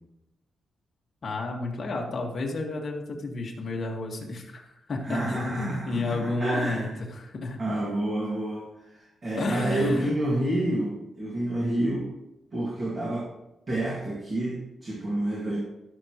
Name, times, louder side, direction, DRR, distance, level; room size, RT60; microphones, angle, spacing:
voice 1, 1.2-7.6 9.4-10.1, left 2 dB, 40° left, -1 dB, 1.8 m, -31 dB
voice 2, 5.0-6.9 7.6-12.1 12.5-13.3 13.7-15.6, right 1 dB, 30° right, -4 dB, 2.1 m, -29 dB
16.5 x 6.9 x 3.1 m, 0.92 s
wide cardioid pair, 170°, 0 cm